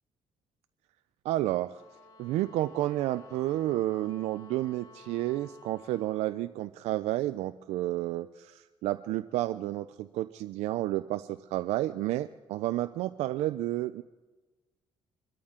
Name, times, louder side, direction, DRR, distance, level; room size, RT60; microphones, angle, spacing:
voice 1, 1.2-1.8 2.2-14.0, right 15 dB, 85° right, 11 dB, 0.4 m, -31 dB
sound 1, 1.6-6.3, left 3 dB, 80° left, 3.9 m, -54 dB
25.0 x 13.0 x 3.7 m, 1.2 s
cardioid pair, 95°, 11 cm